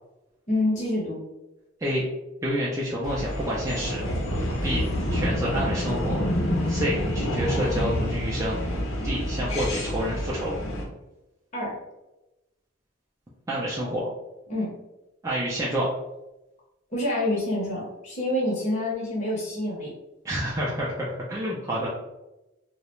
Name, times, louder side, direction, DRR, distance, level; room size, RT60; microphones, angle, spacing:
voice 1, 0.5-1.2 11.5-11.8 14.5-14.8 16.9-19.9, left 1 dB, 35° left, -5 dB, 0.6 m, -27 dB
voice 2, 2.4-4.0 4.6-6.2 6.7-8.6 9.0-10.5 13.5-14.1 15.2-15.9 20.2-21.9, equal, 15° right, -5 dB, 0.3 m, -28 dB
sound 1, 3.0-10.8, equal, 80° left, 0.7 m, -28 dB
2.3 x 2.0 x 2.9 m, 0.98 s
head